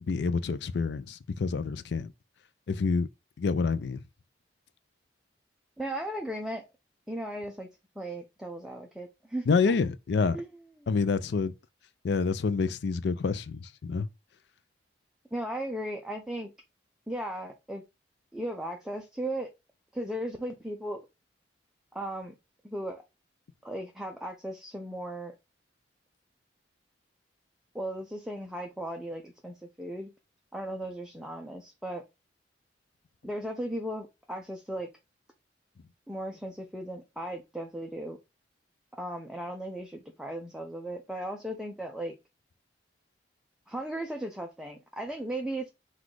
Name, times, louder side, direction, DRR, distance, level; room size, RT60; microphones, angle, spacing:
voice 1, 0.1-2.1 2.7-3.1 3.4-4.0 9.5-10.4 10.9-11.5 12.0-14.1, left 4 dB, 65° left, 0.4 m, -27 dB
voice 2, 5.8-6.6 7.1-7.7 8.0-9.6 10.3-10.9 15.3-16.5 17.1-17.8 18.3-19.5 19.9-21.0 21.9-22.3 22.6-23.0 23.6-25.3 27.7-30.1 30.5-32.0 33.2-34.9 36.1-38.2 39.0-42.1 43.7-45.7, right 1 dB, 5° right, 0.4 m, -36 dB
4.0 x 2.4 x 4.6 m
head